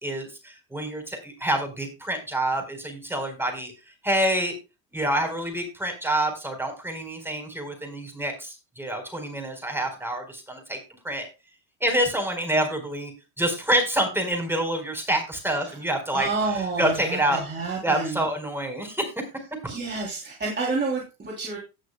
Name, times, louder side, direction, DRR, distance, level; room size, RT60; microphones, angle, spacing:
voice 1, 0.0-3.7 4.0-4.5 4.9-10.8 11.0-11.3 11.8-13.1 13.4-16.3 16.8-17.4 17.8-19.1, right 1 dB, 5° right, 4 dB, 4.5 m, -27 dB
voice 2, 16.1-18.3 19.7-21.6, right 3 dB, 25° right, -3 dB, 3.3 m, -29 dB
18.0 x 6.4 x 2.3 m, 0.28 s
supercardioid pair, 90°, 45 cm